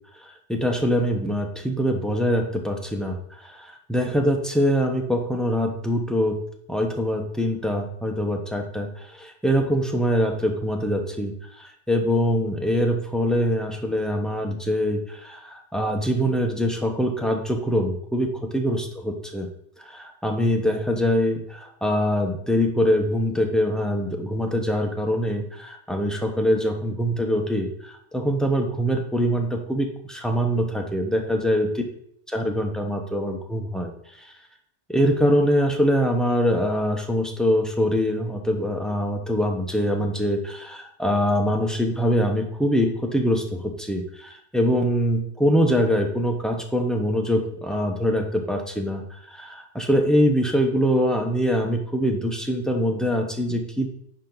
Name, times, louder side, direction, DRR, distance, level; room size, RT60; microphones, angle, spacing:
voice 1, 0.2-6.4 6.7-19.5 19.8-31.7 32.3-33.9 34.2-34.3 34.9-53.9, equal, ahead, 2 dB, 0.9 m, -24 dB
10.5 x 4.5 x 3.9 m, 0.70 s
omnidirectional pair, 1.1 m